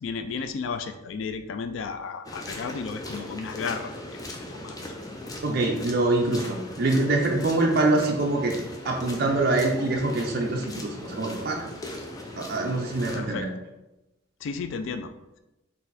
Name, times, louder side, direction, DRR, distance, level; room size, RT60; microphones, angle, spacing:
voice 1, 0.0-4.0 4.3-4.9 13.1-13.5 14.4-15.1, left 5 dB, 75° left, 9 dB, 0.3 m, -33 dB
sound 1, 2.2-13.2, left 1 dB, 20° left, 0.5 m, -39 dB
voice 2, 5.4-8.5 8.8-11.6 12.4-13.5, right 2 dB, 50° right, 0 dB, 0.5 m, -24 dB
4.0 x 2.6 x 4.0 m, 0.97 s
head